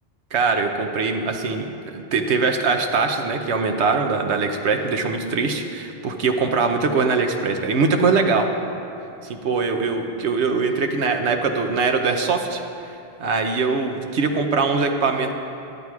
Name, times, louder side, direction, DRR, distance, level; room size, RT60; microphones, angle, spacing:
voice 1, 0.3-8.5 9.2-12.6 13.2-15.3, right 4 dB, 80° right, 4 dB, 1.2 m, -22 dB
12.0 x 8.8 x 4.7 m, 2.8 s
omnidirectional pair, 1.1 m